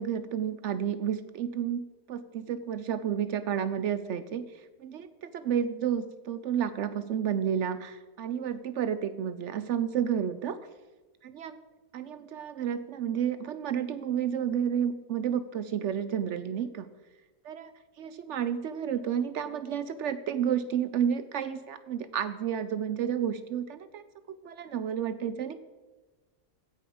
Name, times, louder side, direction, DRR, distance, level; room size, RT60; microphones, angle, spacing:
voice 1, 0.0-4.5 4.8-10.6 11.2-11.6 11.9-16.9 17.4-17.7 18.0-24.0 24.4-25.6, right 8 dB, 65° right, 13 dB, 0.8 m, -31 dB
15.5 x 5.7 x 4.9 m, 1.3 s
omnidirectional pair, 1.5 m